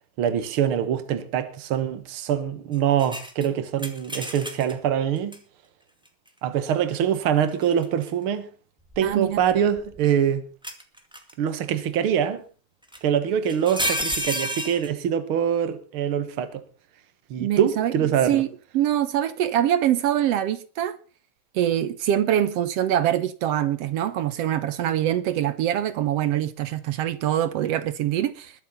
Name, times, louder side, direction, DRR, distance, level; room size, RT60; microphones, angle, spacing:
voice 1, 0.2-5.4 6.4-8.5 9.0-10.4 11.4-12.4 13.0-16.6 17.3-18.4, right 9 dB, 50° right, 2.0 m, -24 dB
sound 1, 3.0-4.7 5.3-5.4 7.5-8.1 8.9-10.0 10.6-11.3 12.9-13.0 13.4-14.9, equal, ahead, 1.4 m, -30 dB
voice 2, 9.0-9.4 17.4-17.9 18.3-18.5 18.7-21.0 21.5-28.5, right 11 dB, 70° right, 1.7 m, -24 dB
21.5 x 7.5 x 5.6 m
omnidirectional pair, 3.4 m